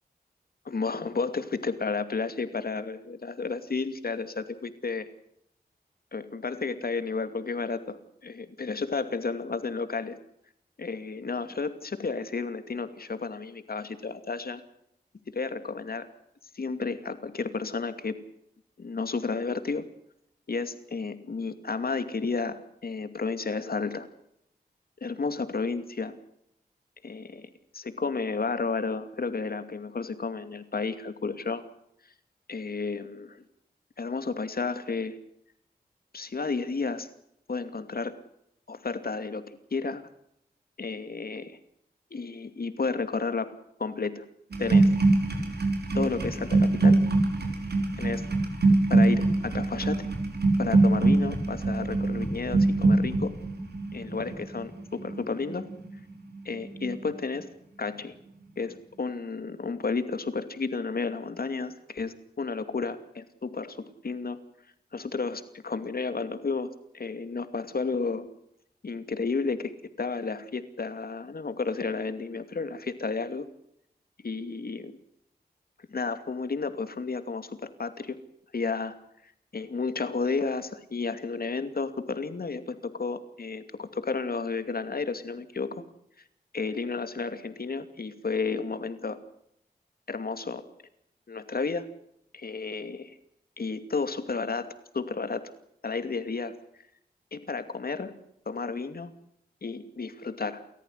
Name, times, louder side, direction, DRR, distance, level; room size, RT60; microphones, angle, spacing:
voice 1, 0.6-5.1 6.1-10.2 10.8-14.6 15.3-16.1 16.5-18.2 18.8-19.8 20.5-24.1 25.0-26.2 27.0-27.4 27.7-31.6 32.5-33.4 34.0-35.2 36.1-37.1 37.5-38.2 38.7-40.0 40.8-41.6 42.1-43.5 43.8-44.2 44.6-44.9 45.9-47.0 48.0-48.3 48.9-50.1 50.6-53.3 53.9-55.7 56.4-57.5 57.8-58.2 58.6-63.8 64.0-64.4 64.9-68.3 68.8-73.5 74.2-75.0 75.9-78.2 78.5-79.0 79.5-85.8 86.5-89.2 90.1-90.6 91.3-91.9 92.3-93.2 93.6-95.5 95.8-96.5 97.3-98.2 98.5-99.1 99.6-100.6, left 4 dB, 65° left, 10 dB, 2.5 m, -32 dB
sound 1, 44.5-56.4 56.6-57.1, right 2 dB, 85° right, 5.0 m, -24 dB
30.0 x 14.5 x 8.1 m, 0.75 s
wide cardioid pair, 80°, 17 cm